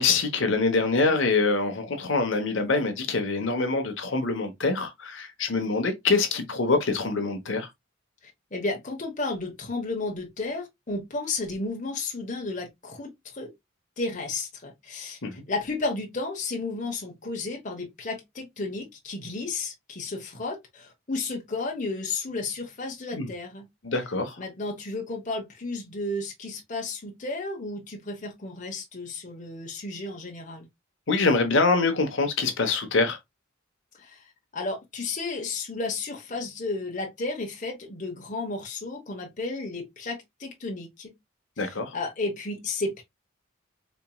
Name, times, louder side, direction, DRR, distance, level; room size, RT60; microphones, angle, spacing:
voice 1, 0.0-7.7 15.2-15.3 23.1-23.3 23.8-24.4 31.1-33.2 41.6-41.9, left 3 dB, 60° left, 0.9 m, -25 dB
voice 2, 8.2-13.5 14.0-23.7 24.4-30.7 34.0-34.2 34.5-41.1 41.6-43.0, left 3 dB, 35° left, 1.0 m, -33 dB
4.4 x 3.0 x 2.2 m
head